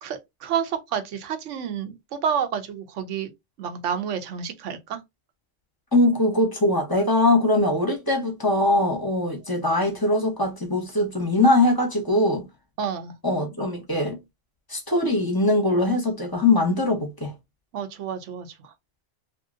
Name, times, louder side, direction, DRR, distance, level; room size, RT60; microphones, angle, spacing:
voice 1, 0.0-3.3 3.6-5.0 12.8-13.1 17.7-18.7, right 7 dB, 75° right, 1.0 m, -29 dB
voice 2, 5.9-12.5 13.2-14.2 14.7-17.3, left 2 dB, 20° left, 0.7 m, -21 dB
2.9 x 2.7 x 2.4 m
omnidirectional pair, 1.3 m